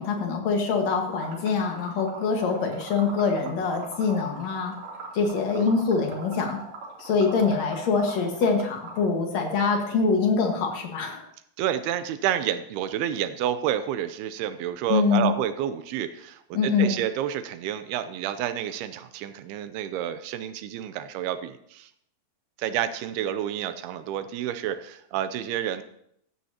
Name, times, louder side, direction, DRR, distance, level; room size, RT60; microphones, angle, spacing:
voice 1, 0.0-4.8 5.1-6.6 7.0-11.2 14.9-15.3 16.5-16.9, left 4 dB, 55° left, 2 dB, 2.4 m, -24 dB
Liquid, 1.1-9.1, right 4 dB, 55° right, 4.5 m, -41 dB
voice 2, 11.6-21.9 22.6-25.8, right 10 dB, 80° right, 11 dB, 2.6 m, -29 dB
15.0 x 12.5 x 2.9 m, 0.71 s
omnidirectional pair, 4.6 m